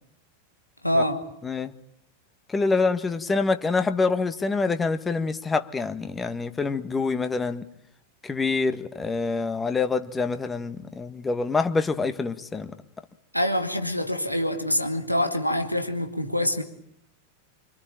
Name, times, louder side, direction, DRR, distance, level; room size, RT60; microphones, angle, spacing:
voice 1, 0.8-1.2 13.3-16.6, left 1 dB, 90° left, 2.1 m, -25 dB
voice 2, 2.5-7.6 8.2-12.7, left 4 dB, 15° left, 1.6 m, -26 dB
26.0 x 25.0 x 9.0 m
figure-of-eight pair, 90°, 0 cm